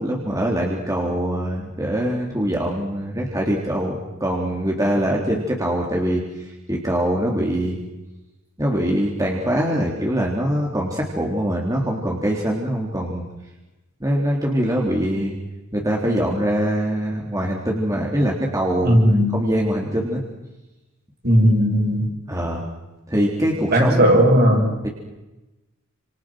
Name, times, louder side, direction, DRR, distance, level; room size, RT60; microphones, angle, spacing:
voice 1, 0.0-7.8 8.6-13.2 14.0-15.4 15.7-19.0 19.3-20.2 22.3-22.7 23.1-24.1 24.8-24.9, equal, 15° right, -1 dB, 3.6 m, -23 dB
voice 2, 18.8-19.3 21.2-22.1 23.7-24.7, equal, 50° right, 1 dB, 7.2 m, -16 dB
30.0 x 27.5 x 6.4 m, 1.0 s
head